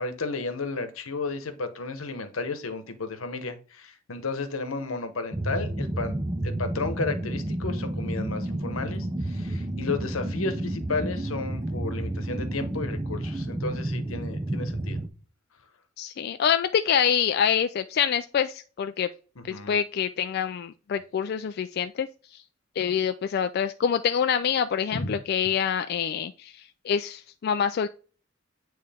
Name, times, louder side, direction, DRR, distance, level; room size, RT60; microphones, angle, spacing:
voice 1, 0.0-6.1 6.4-15.0 19.5-19.8 24.9-25.1, left 3 dB, 85° left, 8 dB, 1.0 m, -33 dB
sound 1, 5.3-15.1, right 1 dB, 15° right, 0.5 m, -31 dB
voice 2, 16.0-19.1 19.5-22.4 22.8-27.9, left 8 dB, 50° left, 9 dB, 0.3 m, -26 dB
8.7 x 3.1 x 3.5 m, 0.38 s
head